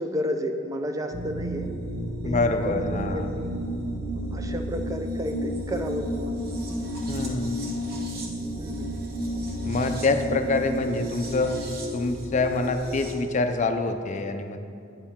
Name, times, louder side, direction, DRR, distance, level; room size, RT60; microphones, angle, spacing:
voice 1, 0.0-1.7 2.2-3.5 4.3-6.5 8.6-8.9, equal, 20° right, 6 dB, 0.5 m, -32 dB
sound 1, 1.1-13.1, equal, 50° right, 1.0 m, -32 dB
voice 2, 2.2-3.3 7.1-7.6 9.6-11.5 11.9-14.6, left 3 dB, 40° left, 7 dB, 0.5 m, -26 dB
8.8 x 7.1 x 3.6 m, 2.6 s
head